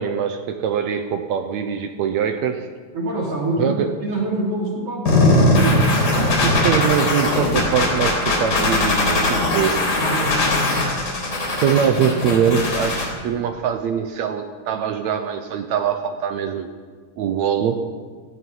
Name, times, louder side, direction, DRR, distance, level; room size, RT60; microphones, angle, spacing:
voice 1, 0.0-2.7 3.6-3.9 6.4-9.8 11.6-16.7 17.2-17.8, right 8 dB, 70° right, 7 dB, 1.9 m, -22 dB
voice 2, 2.9-3.7 4.0-5.8 9.9-10.8, right 2 dB, 50° right, -5 dB, 4.3 m, -25 dB
sound 1, 5.1-13.1, left 2 dB, 60° left, 4.6 m, -19 dB
17.0 x 14.5 x 5.5 m, 1.5 s
omnidirectional pair, 3.5 m